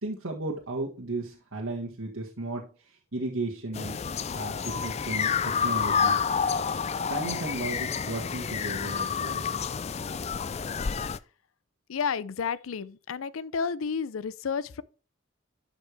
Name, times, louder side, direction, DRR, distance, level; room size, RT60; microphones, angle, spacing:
voice 1, 0.0-4.0 4.3-6.4 6.9-9.5, right 2 dB, 85° right, 1.8 m, -35 dB
sound 1, 3.7-11.2, left 6 dB, 30° left, 0.3 m, -29 dB
voice 2, 11.9-14.8, left 6 dB, 90° left, 0.5 m, -31 dB
12.0 x 5.8 x 3.4 m
head